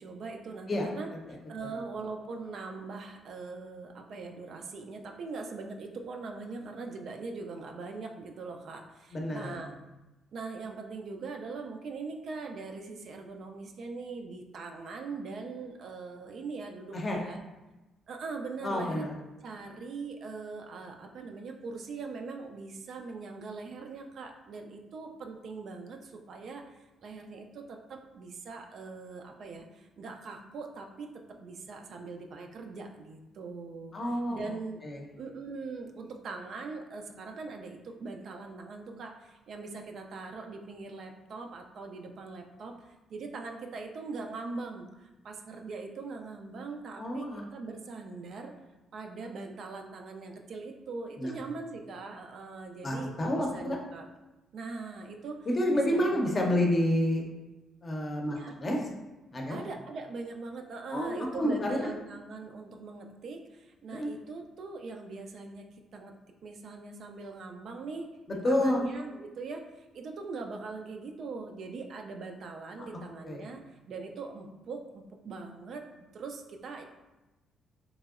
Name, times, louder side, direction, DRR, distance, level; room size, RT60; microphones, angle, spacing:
voice 1, 0.0-9.7 10.3-17.4 18.1-19.1 19.4-34.8 35.2-48.5 48.9-54.1 54.5-56.4 58.3-58.6 59.5-65.7 65.9-66.1 66.4-68.1 68.4-75.8 76.1-76.8, right 4 dB, 65° right, 3 dB, 0.3 m, -41 dB
voice 2, 9.1-9.6 16.9-17.2 18.6-19.1 33.9-34.4 34.8-35.1 47.0-47.4 51.2-51.3 52.8-53.8 55.5-57.2 57.8-58.8 59.3-59.6 60.9-61.9 63.9-64.1 68.4-68.8 72.8-72.9 73.2-73.5, left 1 dB, 35° left, 0 dB, 0.6 m, -29 dB
3.0 x 2.6 x 2.4 m, 1.1 s
cardioid pair, 90°, 0 cm